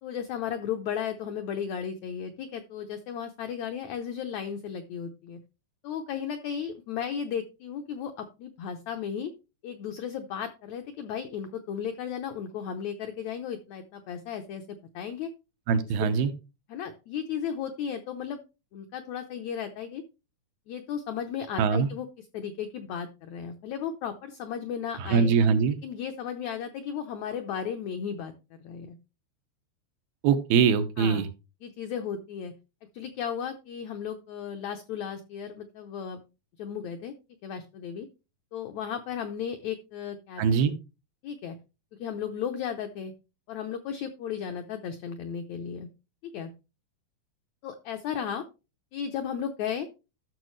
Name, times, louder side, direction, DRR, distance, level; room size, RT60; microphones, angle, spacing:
voice 1, 0.0-5.4 5.8-9.3 9.6-15.3 16.0-16.3 16.7-18.4 18.7-20.0 20.7-25.3 25.8-28.3 28.6-29.0 31.0-31.2 31.6-32.5 32.9-36.2 36.6-37.1 37.4-38.1 38.5-40.8 41.2-41.6 42.0-43.1 43.5-45.9 46.2-46.5 47.6-48.4 48.9-49.9, left 8 dB, 85° left, 6 dB, 1.6 m, -35 dB
voice 2, 15.7-16.3 21.6-21.9 25.0-25.8 30.2-31.3 40.4-40.7, right 6 dB, 90° right, 9 dB, 2.8 m, -22 dB
13.0 x 6.4 x 3.1 m, 0.29 s
omnidirectional pair, 4.2 m